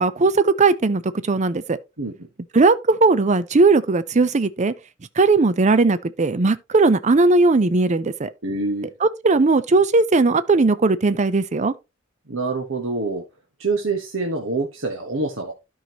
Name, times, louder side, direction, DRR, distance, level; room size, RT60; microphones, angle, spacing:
voice 1, 0.0-1.8 2.5-4.7 5.2-8.3 9.0-11.7, right 3 dB, 35° right, 0.5 m, -18 dB
voice 2, 8.4-8.9 12.3-13.2 13.6-15.5, right 3 dB, 70° right, 1.4 m, -25 dB
12.0 x 5.6 x 2.9 m
head